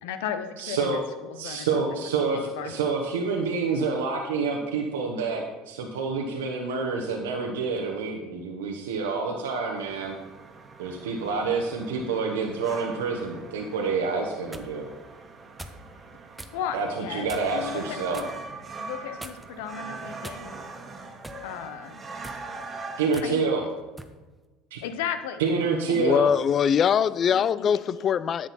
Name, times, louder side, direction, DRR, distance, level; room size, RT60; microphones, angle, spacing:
voice 1, 0.0-2.7 16.5-18.3 18.8-20.6 21.4-22.0 23.2-23.6 24.8-25.4 25.9-26.1 27.3-28.1, left 8 dB, 70° left, 0.8 m, -36 dB
voice 2, 0.6-1.0 1.3-10.1 10.8-14.8 16.7-18.2 23.0-23.6 24.7-24.8 25.4-26.3, right 4 dB, 80° right, 1.1 m, -28 dB
sound 1, 9.8-23.1, right 3 dB, 30° right, 1.5 m, -42 dB
sound 2, 14.1-14.7 15.6-15.8 16.4-16.6 17.3-17.6 18.1-18.4 19.2-19.6 20.2-20.7 21.2-21.5 22.1-22.4 23.1-23.3 24.0-24.2, right 1 dB, 5° right, 0.9 m, -42 dB
voice 3, 26.0-28.5, left 8 dB, 40° left, 0.3 m, -22 dB
10.5 x 7.8 x 4.2 m
hypercardioid pair, 70°, 0 cm